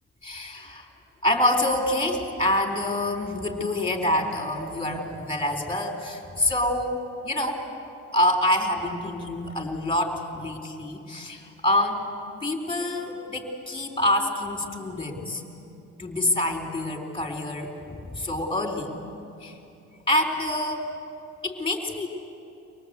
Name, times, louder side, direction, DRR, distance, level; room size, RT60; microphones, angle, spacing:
voice 1, 0.2-0.8 1.2-7.7 8.1-12.0 12.4-15.4 16.0-18.9 19.4-19.6 20.1-20.9 21.4-22.1, left 1 dB, 15° left, 2 dB, 4.0 m, -26 dB
25.0 x 19.0 x 8.2 m, 2.8 s
cardioid pair, 90°, 30 cm